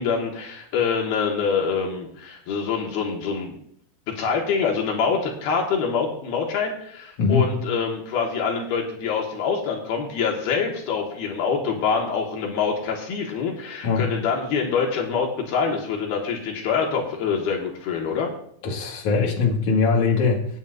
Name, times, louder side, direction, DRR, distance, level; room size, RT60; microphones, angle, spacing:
voice 1, 0.0-3.5 4.1-18.3, left 5 dB, 70° left, 0 dB, 3.5 m, -25 dB
voice 2, 7.2-7.5 13.8-14.1 18.6-20.5, left 5 dB, 55° left, -1 dB, 3.1 m, -21 dB
26.5 x 9.7 x 2.6 m, 0.69 s
omnidirectional pair, 4.6 m